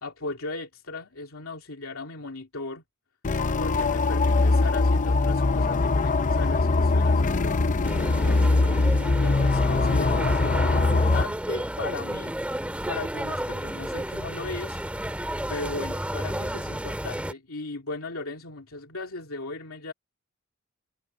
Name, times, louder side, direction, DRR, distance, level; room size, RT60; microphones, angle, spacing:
voice 1, 0.0-2.8 3.6-8.5 9.2-12.3 12.9-14.8 15.5-19.9, left 3 dB, 75° left, 3.0 m, -37 dB
sound 1, 3.2-11.2, left 3 dB, 35° left, 0.6 m, -22 dB
sound 2, 7.8-17.3, right 1 dB, 5° right, 2.0 m, -32 dB
head